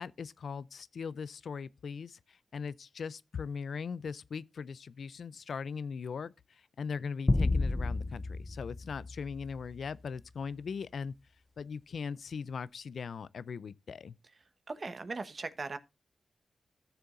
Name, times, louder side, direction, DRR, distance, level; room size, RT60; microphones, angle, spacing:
voice 1, 0.0-11.1 11.6-14.1, left 6 dB, 75° left, 0.4 m, -40 dB
sound 1, 7.3-9.9, left 2 dB, 30° left, 0.6 m, -31 dB
voice 2, 14.7-15.8, right 3 dB, 50° right, 1.1 m, -38 dB
15.5 x 6.9 x 2.5 m
cardioid pair, 60°, 0 cm